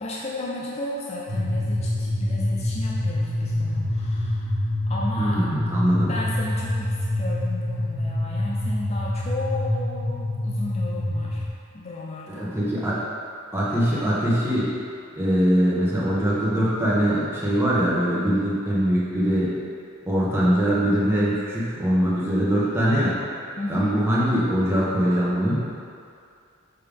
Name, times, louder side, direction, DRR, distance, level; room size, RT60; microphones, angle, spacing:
voice 1, 0.0-5.5 6.1-11.4 11.7-12.5 23.6-24.0, left 2 dB, 30° left, -4 dB, 0.6 m, -34 dB
sound 1, 1.3-11.5, left 1 dB, 80° right, 1.2 m, -26 dB
voice 2, 5.2-6.1 12.4-13.0 13.5-14.7 15.2-19.5 20.1-23.2 23.7-25.6, equal, 10° right, -8 dB, 1.3 m, -22 dB
6.7 x 5.6 x 3.6 m, 2.3 s
head